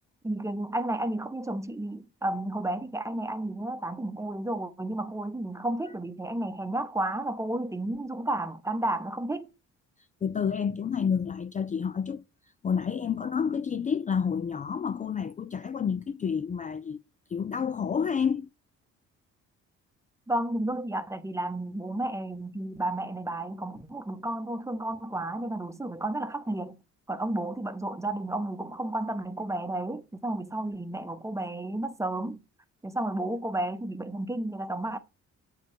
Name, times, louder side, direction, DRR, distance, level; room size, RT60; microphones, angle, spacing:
voice 1, 0.2-9.5 20.3-26.8 27.1-32.4 32.8-35.0, right 1 dB, 10° right, 0.9 m, -32 dB
voice 2, 10.2-12.2 12.6-17.0 17.3-18.5, left 7 dB, 25° left, 0.4 m, -29 dB
7.5 x 5.3 x 4.5 m
cardioid pair, 90°, 30 cm